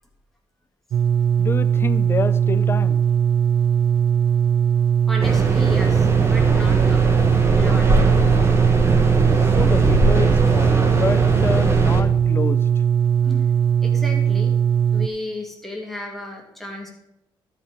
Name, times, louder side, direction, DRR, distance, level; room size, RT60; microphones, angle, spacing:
sound 1, 0.9-15.1, right 8 dB, 75° right, 0.4 m, -19 dB
voice 1, 1.4-3.0 9.4-12.7, left 4 dB, 25° left, 12 dB, 0.6 m, -27 dB
voice 2, 5.1-7.0 7.5-8.1 13.2-13.6 13.8-14.6 14.9-16.9, left 1 dB, ahead, -1 dB, 2.1 m, -33 dB
sound 2, 5.2-12.0, right 2 dB, 30° right, 1.3 m, -20 dB
12.5 x 5.5 x 5.0 m, 0.84 s
cardioid pair, 120°, 9 cm